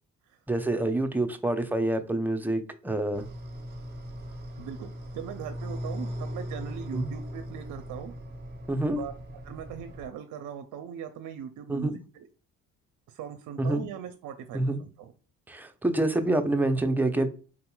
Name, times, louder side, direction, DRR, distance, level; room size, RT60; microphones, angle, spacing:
voice 1, 0.5-3.2 6.9-7.1 8.7-9.0 11.7-12.0 13.6-13.8 14.5-14.8 15.5-17.3, right 2 dB, 5° right, 6 dB, 0.6 m, -27 dB
sound 1, 3.1-10.1, equal, 30° right, 1.3 m, -39 dB
voice 2, 4.6-8.1 8.9-9.1 9.4-12.3 13.1-15.1, right 8 dB, 65° right, 8 dB, 0.5 m, -40 dB
3.8 x 2.8 x 2.2 m, 0.37 s
supercardioid pair, 60°, 33 cm